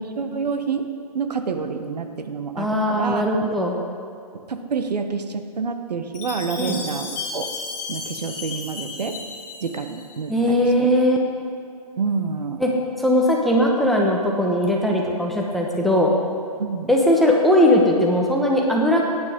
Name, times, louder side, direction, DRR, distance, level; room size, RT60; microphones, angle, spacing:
voice 1, 0.2-3.2 4.5-7.5 7.9-9.2 9.6-10.6 12.0-12.6 16.6-16.9, right 5 dB, 90° right, 7 dB, 1.1 m, -28 dB
voice 2, 2.6-3.8 6.6-6.8 10.3-11.2 12.6-12.7 13.0-16.1 16.9-19.0, left 1 dB, ahead, -2 dB, 1.0 m, -19 dB
Chime, 6.1-10.3, left 4 dB, 25° left, 2.3 m, -34 dB
16.5 x 9.4 x 3.7 m, 2.3 s
hypercardioid pair, 145°, 20 cm